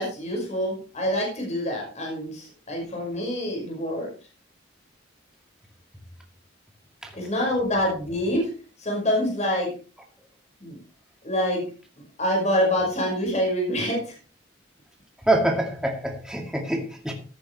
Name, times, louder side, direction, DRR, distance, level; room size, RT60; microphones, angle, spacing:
voice 1, 0.0-4.1 7.1-8.5 8.8-9.7 10.6-10.8 11.2-11.6 12.2-14.2, equal, 40° left, 0 dB, 5.5 m, -26 dB
voice 2, 15.2-17.1, right 1 dB, 5° right, 1 dB, 2.2 m, -25 dB
15.0 x 10.5 x 3.3 m, 0.36 s
head